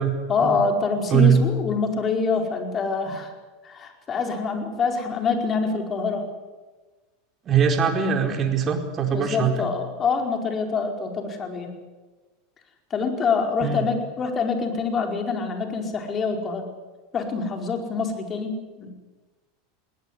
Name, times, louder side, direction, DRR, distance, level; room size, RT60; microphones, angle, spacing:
voice 1, 0.3-3.3 3.6-6.3 9.1-11.8 12.9-16.7 17.1-18.9, left 4 dB, 30° left, 4 dB, 4.8 m, -25 dB
voice 2, 1.1-1.4 7.5-9.7 13.6-13.8, right 7 dB, 35° right, 4 dB, 4.5 m, -21 dB
20.5 x 18.5 x 9.8 m, 1.3 s
hypercardioid pair, 85°, 0 cm